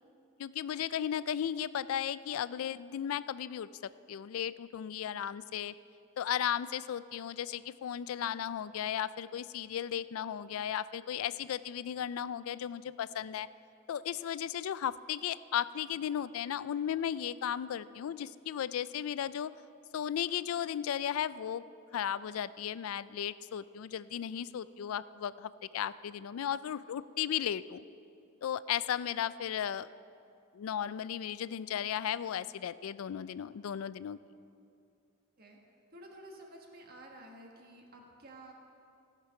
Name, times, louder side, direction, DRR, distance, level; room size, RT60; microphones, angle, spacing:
voice 1, 0.4-3.7 4.1-5.7 6.2-13.5 13.9-19.5 19.9-21.6 21.9-27.8 28.4-29.9 30.5-34.2, left 9 dB, 80° left, 17 dB, 0.3 m, -35 dB
voice 2, 35.9-38.5, right 1 dB, 45° right, 1 dB, 1.4 m, -52 dB
17.0 x 6.0 x 5.7 m, 2.6 s
head